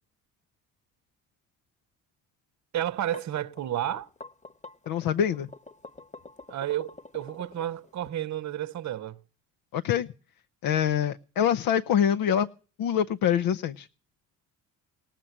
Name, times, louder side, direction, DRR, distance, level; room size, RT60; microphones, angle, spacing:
voice 1, 2.7-4.1 6.5-9.2, right 12 dB, 50° right, 0.8 m, -31 dB
sound 1, 2.9-8.1, left 3 dB, 20° left, 1.2 m, -46 dB
voice 2, 4.9-5.5 9.7-10.1 10.6-12.5 12.8-13.9, left 9 dB, 65° left, 0.7 m, -25 dB
18.5 x 7.5 x 9.9 m
supercardioid pair, 60°, 37 cm